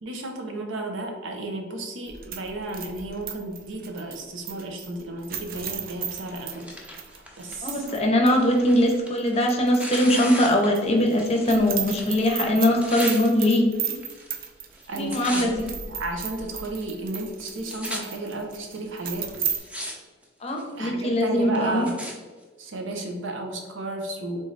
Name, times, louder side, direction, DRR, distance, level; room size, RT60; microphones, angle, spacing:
voice 1, 0.0-7.8 14.9-15.6 15.9-19.3 20.6-22.0 22.6-24.4, right 2 dB, 85° right, 3 dB, 0.7 m, -33 dB
sound 1, 2.1-8.0 8.3-8.4 8.9-10.2 10.5-19.6, right 8 dB, 50° right, 0.4 m, -35 dB
Tearing, 6.1-11.6 11.8-13.2 13.9-14.5 14.7-15.7 16.3-16.4 17.2-17.3 17.4-18.0 18.8-18.9 19.3-19.9 20.2-20.7 21.3-22.1 22.9-23.0, equal, 5° right, 0.6 m, -37 dB
voice 2, 7.6-14.0 14.9-15.7 20.4-21.8, left 1 dB, 35° left, 2 dB, 0.7 m, -21 dB
3.7 x 3.2 x 3.9 m, 1.4 s
head